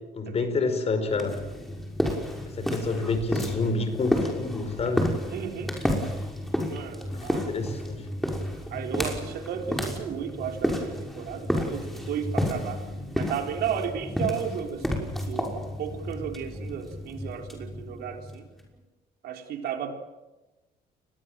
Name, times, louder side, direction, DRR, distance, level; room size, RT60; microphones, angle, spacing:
voice 1, 0.1-1.4 2.5-5.2 7.1-8.1, left 3 dB, 40° left, 8 dB, 5.0 m, -28 dB
sound 1, 1.1-18.6, equal, ahead, 6.0 m, -31 dB
voice 2, 5.3-5.7 6.7-7.4 8.7-12.8 13.2-18.4 19.2-19.9, right 8 dB, 70° right, 4 dB, 3.9 m, -34 dB
29.5 x 21.5 x 7.5 m, 1.1 s
cardioid pair, 110°, 17 cm